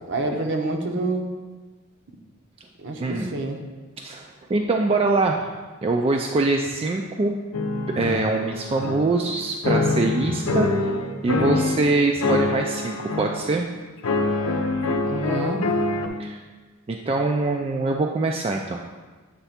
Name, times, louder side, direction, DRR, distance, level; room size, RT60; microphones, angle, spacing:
voice 1, 0.1-1.3 2.8-3.6 15.0-15.7, right 2 dB, 60° right, 3 dB, 0.8 m, -27 dB
voice 2, 3.0-3.4 4.0-5.5 5.8-7.4 7.9-10.9 11.2-13.7 16.2-16.4 16.9-18.9, right 3 dB, 25° right, 2 dB, 0.3 m, -23 dB
sound 1, 7.5-9.3 9.6-11.9 12.2-13.5 14.0-16.1, left 3 dB, 80° left, 0.7 m, -25 dB
8.0 x 3.3 x 5.7 m, 1.3 s
head